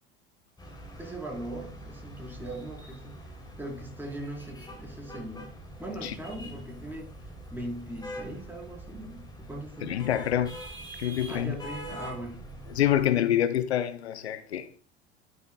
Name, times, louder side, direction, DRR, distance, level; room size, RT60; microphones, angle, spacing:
sound 1, 0.6-13.1, right 1 dB, 15° left, 3.1 m, -44 dB
voice 1, 1.0-5.5 5.8-7.1 7.5-10.1 11.3-12.4, right 1 dB, 5° right, 4.1 m, -40 dB
voice 2, 9.8-10.5 11.0-11.5 12.7-14.8, left 11 dB, 80° left, 0.6 m, -26 dB
12.0 x 7.2 x 2.3 m
hypercardioid pair, 75°, 32 cm